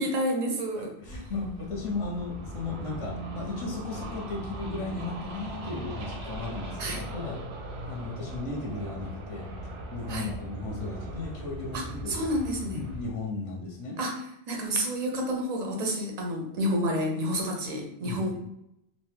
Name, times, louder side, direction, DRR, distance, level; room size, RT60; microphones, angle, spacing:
voice 1, 0.0-0.9 6.8-7.0 10.1-10.3 11.7-12.8 14.0-14.2 14.5-18.3, equal, 50° right, 1 dB, 0.6 m, -29 dB
voice 2, 0.7-7.4 7.9-12.3 12.7-14.0 18.0-18.4, left 3 dB, 35° left, -2 dB, 0.6 m, -36 dB
sound 1, 1.0-13.1, right 1 dB, 85° right, 0.9 m, -39 dB
2.6 x 2.1 x 3.2 m, 0.80 s
omnidirectional pair, 1.1 m